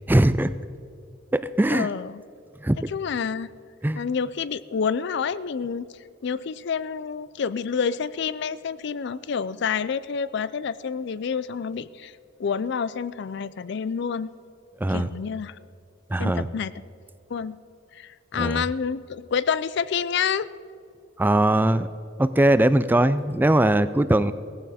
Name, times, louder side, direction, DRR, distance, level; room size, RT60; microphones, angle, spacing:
voice 1, 0.1-0.6 1.3-1.9 2.6-2.8 3.8-4.0 14.8-15.1 16.1-16.5 18.4-18.6 21.2-21.9 22.2-24.3, right 1 dB, 10° right, 14 dB, 0.3 m, -20 dB
voice 2, 1.7-2.2 2.9-3.5 3.9-5.9 6.2-12.1 12.4-14.3 14.9-15.6 16.2-16.7 17.3-17.6 17.9-20.5, left 6 dB, 60° left, 17 dB, 0.4 m, -28 dB
17.5 x 15.5 x 4.2 m, 2.5 s
head